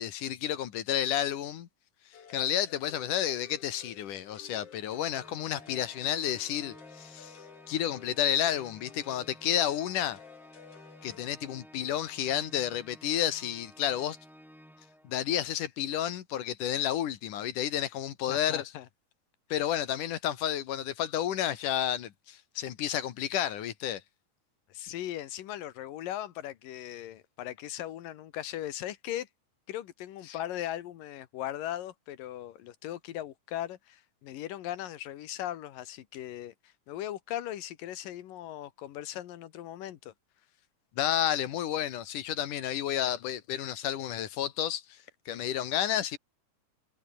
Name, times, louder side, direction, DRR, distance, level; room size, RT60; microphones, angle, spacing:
voice 1, 0.0-1.7 2.3-7.4 7.7-10.2 11.0-14.2 15.0-18.6 19.5-24.0 41.0-45.0 45.3-46.2, left 11 dB, 75° left, 3.0 m, -31 dB
sound 1, 2.1-11.3, left 7 dB, 50° left, 3.2 m, -53 dB
Organ, 4.9-15.5, equal, ahead, 6.2 m, -55 dB
voice 2, 18.3-18.9 24.7-29.3 29.7-40.1, left 12 dB, 90° left, 3.1 m, -38 dB
omnidirectional pair, 3.8 m